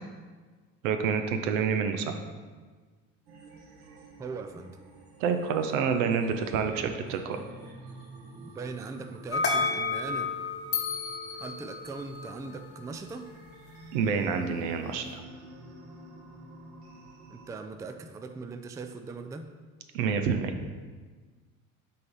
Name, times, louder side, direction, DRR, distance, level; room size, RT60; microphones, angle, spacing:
voice 1, 0.8-2.1 5.2-7.4 13.9-15.2 19.9-20.5, right 6 dB, 75° right, 7 dB, 0.8 m, -28 dB
sound 1, 3.3-17.6, right 1 dB, 60° right, 1.4 m, -49 dB
voice 2, 4.2-4.8 8.4-10.3 11.3-13.3 17.3-19.5, right 4 dB, 10° right, 7 dB, 0.3 m, -40 dB
sound 2, 9.3-12.6, left 4 dB, 35° left, 1.1 m, -31 dB
6.6 x 4.1 x 5.4 m, 1.4 s
hypercardioid pair, 65°, 43 cm